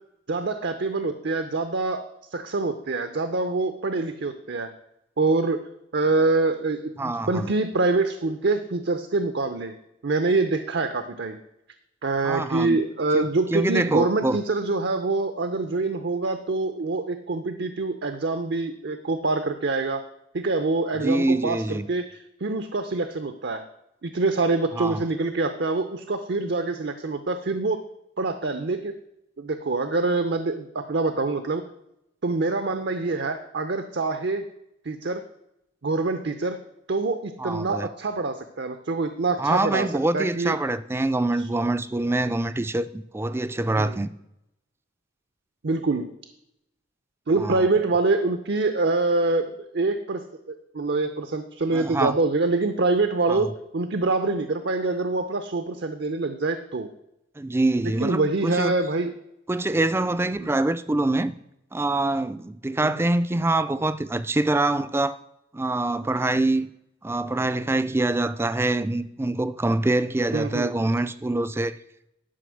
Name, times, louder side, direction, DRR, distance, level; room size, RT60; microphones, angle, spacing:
voice 1, 0.3-2.0 2.3-4.7 5.2-5.6 5.9-9.7 10.0-11.4 12.0-20.0 20.3-23.6 24.0-27.8 28.2-28.9 29.4-31.6 32.2-34.5 34.8-35.2 35.8-36.6 36.9-39.9 40.1-40.6 43.8-44.0 45.6-46.1 47.3-56.9 58.0-59.1 60.4-60.5 62.8-62.9 70.3-70.7, right 3 dB, 65° right, 0.7 m, -25 dB
voice 2, 7.0-7.5 12.2-12.8 13.1-14.4 21.0-21.9 24.8-25.1 37.4-37.9 39.4-44.1 47.4-47.7 51.7-52.1 53.3-53.5 57.4-58.7 59.5-61.4 61.7-65.2 65.5-66.7 67.0-71.8, right 2 dB, 15° right, 0.4 m, -25 dB
11.5 x 5.3 x 6.3 m
head